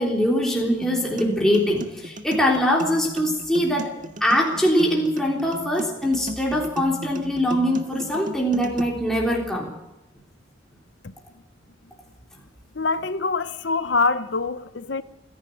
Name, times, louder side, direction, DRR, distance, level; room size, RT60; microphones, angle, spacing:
voice 1, 0.0-3.9 4.2-9.7, equal, ahead, 3.5 m, -22 dB
sound 1, 0.8-8.8, equal, 40° right, 1.7 m, -35 dB
voice 2, 12.7-15.0, left 3 dB, 60° left, 0.8 m, -24 dB
29.0 x 11.0 x 9.2 m
head